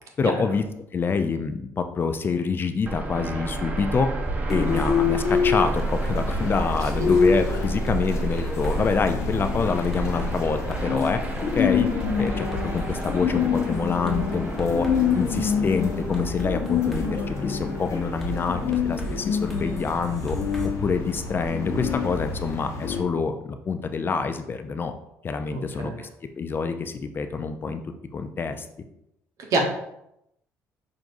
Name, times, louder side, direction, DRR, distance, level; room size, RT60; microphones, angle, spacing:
voice 1, 0.2-0.6 0.9-4.1 4.5-11.2 11.5-11.9 12.2-14.9 15.1-20.4 20.6-24.9 25.2-26.1 26.4-27.8 28.1-28.7, left 5 dB, 35° left, 8 dB, 0.4 m, -26 dB
sound 1, 2.9-22.5, right 2 dB, 25° right, 0.7 m, -32 dB
sound 2, 4.2-4.9 5.8-7.2 7.9-9.0 9.9-11.2 11.7-13.2 14.1-15.5 16.1-17.3 18.2-20.7, right 3 dB, ahead, 1.1 m, -36 dB
sound 3, 4.5-23.0, left 6 dB, 50° left, 0.9 m, -27 dB
voice 2, 25.5-26.0 29.5-29.6, right 3 dB, 60° right, 2 dB, 1.0 m, -26 dB
6.0 x 2.5 x 2.6 m, 0.81 s
supercardioid pair, 80°, 6 cm